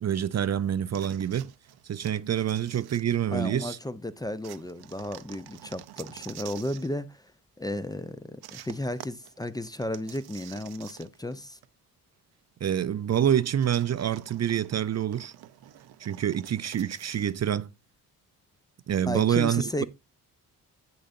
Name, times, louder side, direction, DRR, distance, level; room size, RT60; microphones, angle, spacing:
voice 1, 0.0-1.5 1.8-3.8 12.6-15.3 16.0-17.7 18.9-19.8, right 10 dB, 45° right, 0.6 m, -27 dB
sound 1, 0.9-3.6 4.4-6.9 8.4-11.4 11.6-11.7 13.6-17.4, right 13 dB, 85° right, 0.8 m, -48 dB
voice 2, 3.3-7.3 7.6-11.6 19.0-19.8, left 1 dB, 10° left, 0.6 m, -34 dB
10.5 x 7.8 x 2.6 m
cardioid pair, 90°, 37 cm